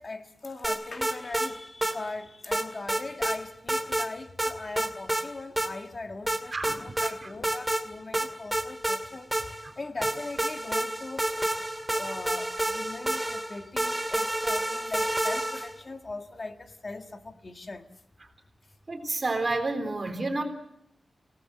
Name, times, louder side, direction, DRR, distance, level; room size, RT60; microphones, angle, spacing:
voice 1, 0.0-11.3 11.9-17.9, left 3 dB, 40° left, 1.7 m, -40 dB
sound 1, 0.6-1.5 1.8-1.9 2.5-3.4 3.7-4.1 4.4-5.2 5.6-5.7 6.3-7.1 7.4-7.8 8.1-9.7 10.0-15.8, right 1 dB, 10° right, 2.2 m, -29 dB
voice 2, 6.5-7.4 18.9-20.4, right 2 dB, 35° right, 3.6 m, -30 dB
27.5 x 18.0 x 7.8 m
wide cardioid pair, 135°, 0 cm